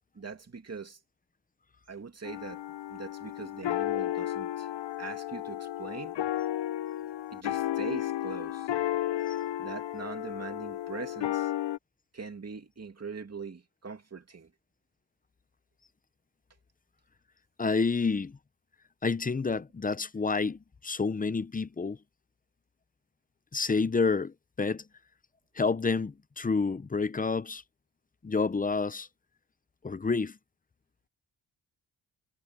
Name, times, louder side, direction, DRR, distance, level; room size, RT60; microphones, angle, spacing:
voice 1, 0.2-1.0 1.9-2.6 2.9-4.7 5.0-6.2 7.3-8.7 9.6-11.5 12.1-14.5, right 5 dB, 35° right, 2.5 m, -42 dB
sound 1, 2.2-11.8, left 13 dB, 75° left, 0.6 m, -33 dB
voice 2, 17.6-18.4 19.0-22.0 23.5-24.8 25.6-27.6 28.2-29.1 29.8-30.3, left 4 dB, 20° left, 0.5 m, -29 dB
wide cardioid pair, 155°, 44 cm